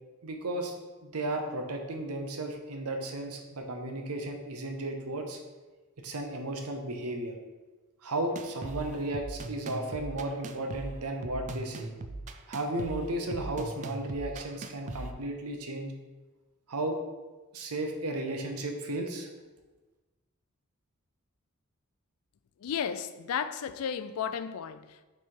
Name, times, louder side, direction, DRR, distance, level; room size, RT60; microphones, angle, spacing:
voice 1, 0.2-0.8 1.0-5.4 6.0-7.3 8.0-11.9 12.5-15.9 16.7-17.0 17.5-19.3, right 1 dB, 90° right, 0.8 m, -34 dB
sound 1, 8.4-15.1, right 3 dB, 35° right, 0.3 m, -40 dB
voice 2, 22.6-25.0, left 7 dB, 75° left, 0.4 m, -34 dB
6.1 x 3.4 x 4.6 m
head